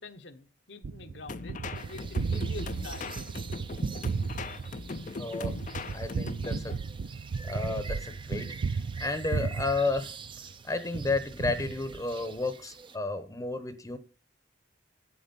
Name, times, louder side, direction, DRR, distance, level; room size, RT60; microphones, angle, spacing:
voice 1, 0.0-3.5 4.8-5.0 5.4-5.6, left 3 dB, 65° left, 1.0 m, -46 dB
Gunshot gunfire, 0.8-10.5 10.9-12.4, right 4 dB, 70° right, 0.5 m, -35 dB
sound 1, 1.3-6.8, left 4 dB, 40° left, 0.5 m, -40 dB
sound 2, 1.7-13.0, right 5 dB, 25° right, 0.6 m, -47 dB
voice 2, 5.1-5.6 5.9-6.8 7.4-10.1 10.6-14.0, left 3 dB, 15° left, 0.9 m, -32 dB
11.5 x 8.5 x 5.3 m
head